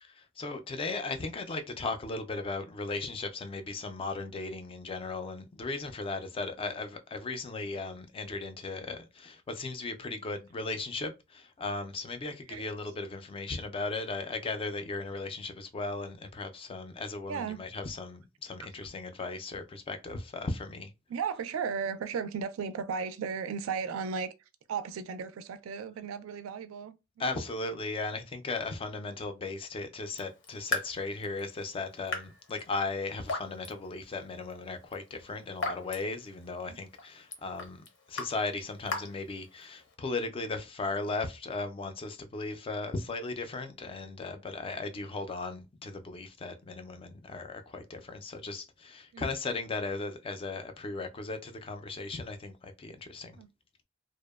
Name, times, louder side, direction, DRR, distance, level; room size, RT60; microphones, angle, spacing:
voice 1, 0.0-20.9 27.2-53.4, left 3 dB, 25° left, 0.3 m, -37 dB
voice 2, 17.3-17.6 21.1-24.3 24.7-27.4 36.6-36.8 49.1-49.3 53.4-53.5, right 6 dB, 75° right, 0.3 m, -35 dB
Raindrop / Drip, 30.0-39.9, left 3 dB, 60° left, 0.6 m, -41 dB
2.7 x 2.0 x 2.2 m
head